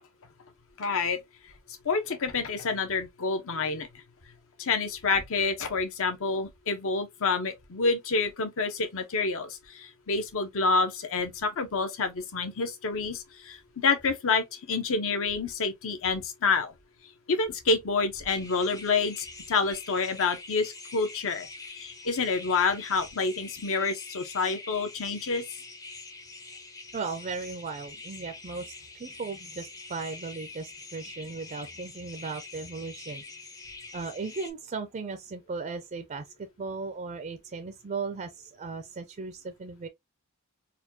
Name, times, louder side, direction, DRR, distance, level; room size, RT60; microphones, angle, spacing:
voice 1, 0.8-1.2 1.8-3.9 4.6-16.7 17.3-21.5 21.7-25.4, left 4 dB, 65° left, 0.8 m, -28 dB
sound 1, 18.3-34.5, left 3 dB, 15° left, 0.6 m, -45 dB
voice 2, 26.9-33.2 33.9-39.9, right 4 dB, 35° right, 0.4 m, -37 dB
4.2 x 2.2 x 2.7 m
head